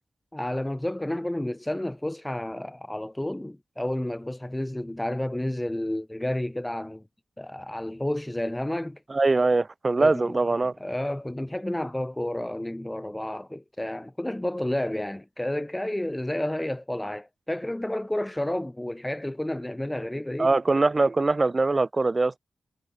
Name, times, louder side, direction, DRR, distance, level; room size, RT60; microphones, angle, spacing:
voice 1, 0.3-7.0 7.4-9.0 10.0-10.5 10.8-20.5, left 1 dB, 15° left, 0.8 m, -31 dB
voice 2, 9.1-10.8 20.4-22.4, right 3 dB, 40° right, 2.2 m, -22 dB
cardioid pair, 55°, 0 cm